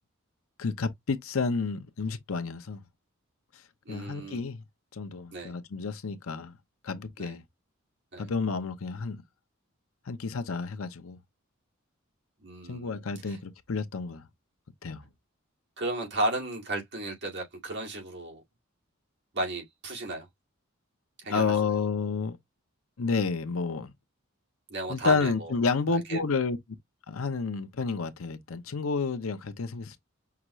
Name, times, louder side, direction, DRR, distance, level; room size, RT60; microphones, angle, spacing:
voice 1, 0.6-2.8 3.5-3.6 3.9-4.6 4.9-6.6 6.8-7.4 8.2-9.2 10.1-11.2 12.7-14.3 14.8-15.0 21.3-22.4 23.0-23.9 24.9-26.6 27.1-30.0, left 4 dB, 80° left, 0.7 m, -30 dB
voice 2, 3.9-4.5 5.3-5.5 7.2-7.3 8.1-8.3 12.4-13.4 15.8-18.4 19.3-20.3 21.2-21.5 24.7-25.5 26.1-26.2, right 1 dB, 60° right, 2.3 m, -34 dB
5.9 x 2.4 x 3.0 m
head